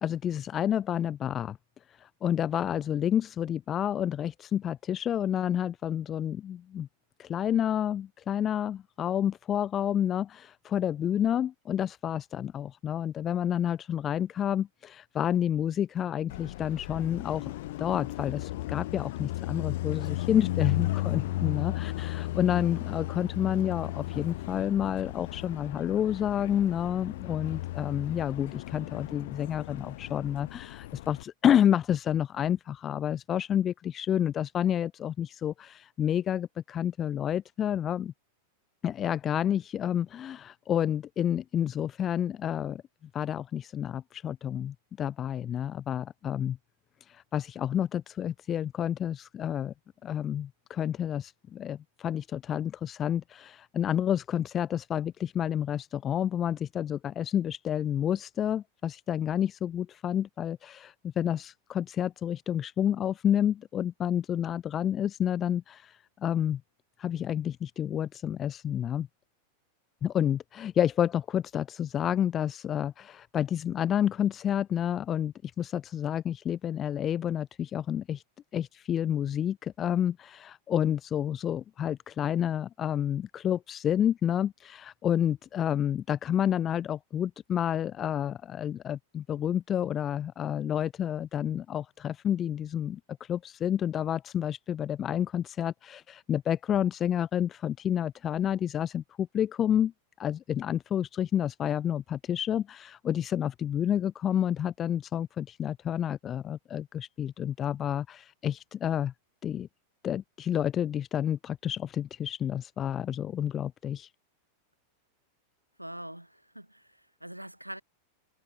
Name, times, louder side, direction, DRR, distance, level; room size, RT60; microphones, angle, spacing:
voice 1, 0.0-1.6 1.9-6.9 7.2-17.5 17.8-38.1 38.8-42.8 43.1-46.6 47.1-49.7 50.0-66.6 67.0-69.1 70.0-78.2 78.5-99.9 100.2-109.1 109.4-109.7 110.0-114.1, left 10 dB, 25° left, 1.2 m, -29 dB
Car passing by, 16.3-31.2, left 17 dB, 55° left, 2.4 m, -35 dB
voice 2, 115.8-117.8, right 1 dB, 90° right, 6.9 m, -43 dB
figure-of-eight pair, 90°, 0 cm